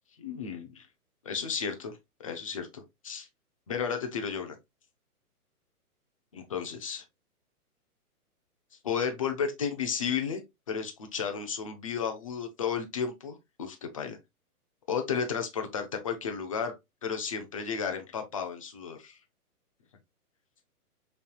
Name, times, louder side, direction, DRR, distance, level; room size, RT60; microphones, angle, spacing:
voice 1, 0.2-0.9 1.2-3.3 3.7-4.6 6.3-7.0 8.8-14.2 14.9-16.7 17.0-19.2, left 6 dB, 25° left, 0.5 m, -33 dB
5.4 x 3.3 x 2.2 m
hypercardioid pair, 150°, 45 cm